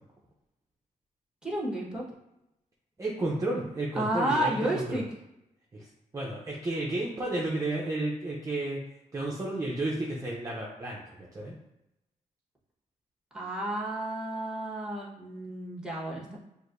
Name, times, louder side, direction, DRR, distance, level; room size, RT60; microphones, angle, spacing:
voice 1, 1.4-2.0 3.9-5.0 13.3-16.4, right 1 dB, 5° right, -4 dB, 1.3 m, -31 dB
voice 2, 3.0-5.0 5.7-5.9 6.1-8.9 9.1-11.5, right 2 dB, 25° right, -3 dB, 0.7 m, -32 dB
6.2 x 2.7 x 2.6 m, 0.89 s
cardioid pair, 100°, 14 cm